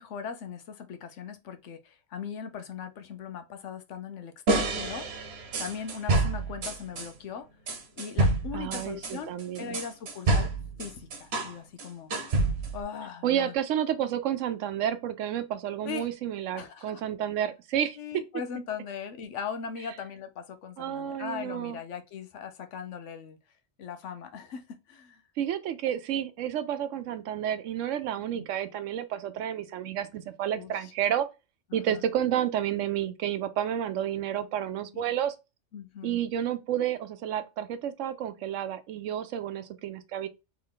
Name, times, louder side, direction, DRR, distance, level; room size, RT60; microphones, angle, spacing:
voice 1, 0.0-5.1 5.6-7.5 8.0-9.3 9.6-10.5 10.8-12.2 12.7-13.5 15.8-16.1 16.5-17.0 18.0-23.4 23.8-25.2 28.3-28.5 30.5-30.9 31.7-32.0 34.9-35.2 35.7-36.2, left 7 dB, 80° left, 1.0 m, -39 dB
sound 1, 4.5-7.1 7.7-11.5 11.8-12.8, right 2 dB, 60° right, 1.1 m, -28 dB
voice 2, 8.5-9.8 13.2-18.0 20.8-21.8 25.4-31.3 31.7-35.3 36.0-40.3, right 10 dB, 90° right, 1.0 m, -30 dB
3.4 x 3.0 x 3.8 m
omnidirectional pair, 1.2 m